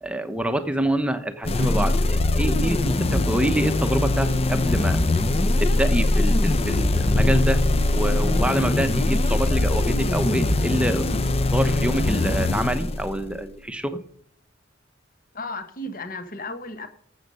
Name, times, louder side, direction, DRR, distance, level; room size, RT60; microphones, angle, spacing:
voice 1, 0.0-5.0 5.6-7.6 7.9-14.0, right 1 dB, 5° right, 9 dB, 0.8 m, -26 dB
sound 1, 1.4-13.4, left 2 dB, 30° left, 0.7 m, -22 dB
voice 2, 15.3-16.9, left 2 dB, 50° left, 9 dB, 1.3 m, -34 dB
12.5 x 8.2 x 5.4 m, 0.64 s
head